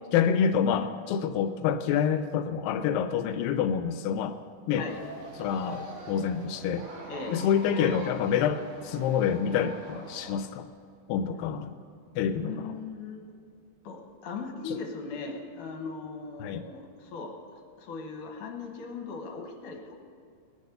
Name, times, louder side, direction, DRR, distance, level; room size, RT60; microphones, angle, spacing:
voice 1, 0.1-4.4 4.7-4.9 5.4-6.9 7.3-10.7 11.1-11.7 12.2-12.7 14.7-14.8 16.4-16.6, left 8 dB, 85° left, 9 dB, 2.3 m, -27 dB
sound 1, 4.9-10.3, right 2 dB, 55° right, 2.8 m, -43 dB
voice 2, 12.4-13.2 13.8-17.4 17.8-20.0, left 4 dB, 70° left, 2 dB, 2.7 m, -38 dB
19.5 x 7.3 x 6.7 m, 2.4 s
omnidirectional pair, 4.0 m